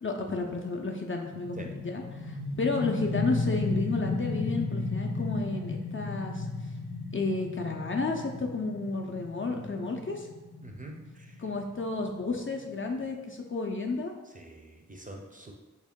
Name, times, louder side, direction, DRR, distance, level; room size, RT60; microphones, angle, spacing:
voice 1, 0.0-6.7 7.1-10.3 11.4-14.1, left 3 dB, 40° left, 1 dB, 0.4 m, -32 dB
sound 1, 1.3-12.8, left 3 dB, 85° left, 0.6 m, -35 dB
voice 2, 10.6-10.9 14.3-15.5, right 2 dB, 25° right, 1 dB, 0.5 m, -44 dB
3.5 x 2.2 x 3.5 m, 1.1 s
wide cardioid pair, 45°, 31 cm